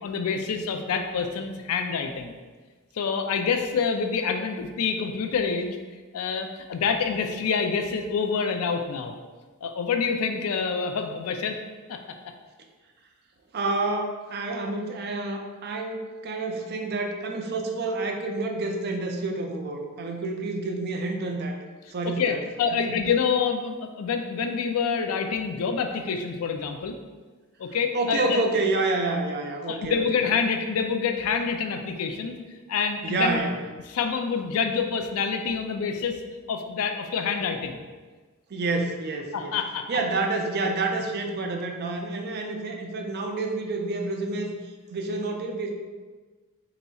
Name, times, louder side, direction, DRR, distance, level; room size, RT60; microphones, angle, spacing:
voice 1, 0.0-2.4 3.0-5.8 6.1-9.1 9.6-11.6 11.9-12.2 22.0-27.0 27.6-28.4 29.7-32.4 32.7-33.4 33.9-36.2 36.5-37.8 39.3-39.9, left 5 dB, 75° left, 5 dB, 0.4 m, -27 dB
voice 2, 13.5-21.6 21.9-22.4 22.8-23.0 27.9-30.0 33.0-33.6 38.5-39.6 39.9-44.5 44.9-45.7, right 2 dB, 45° right, 3 dB, 0.4 m, -28 dB
4.0 x 4.0 x 2.3 m, 1.4 s
head